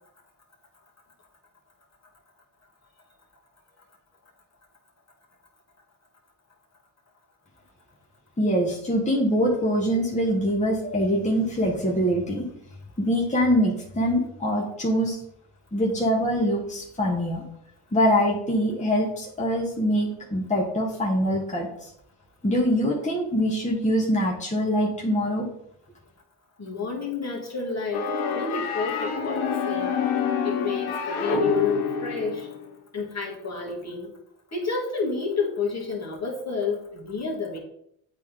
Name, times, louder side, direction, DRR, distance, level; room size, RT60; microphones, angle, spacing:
voice 1, 8.4-12.5 13.0-15.2 15.7-17.4 17.9-21.7 22.4-25.5, equal, 15° left, -3 dB, 1.5 m, -24 dB
voice 2, 26.6-30.0 30.4-32.5 32.9-34.1 34.5-37.6, left 4 dB, 35° left, -1 dB, 1.9 m, -30 dB
sound 1, 27.9-32.7, left 5 dB, 80° left, 1.0 m, -27 dB
8.2 x 3.2 x 3.7 m, 0.73 s
supercardioid pair, 55°, 48 cm